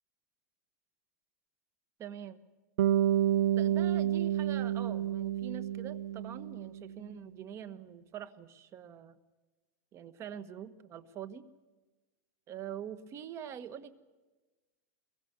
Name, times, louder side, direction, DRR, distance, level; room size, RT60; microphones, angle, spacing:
voice 1, 2.0-2.4 3.5-9.1 9.9-11.5 12.5-13.9, right 9 dB, 30° right, 14 dB, 1.5 m, -44 dB
Bass guitar, 2.8-7.0, right 11 dB, 75° right, 0.9 m, -29 dB
23.0 x 22.5 x 8.2 m, 1.2 s
supercardioid pair, 145°, 9 cm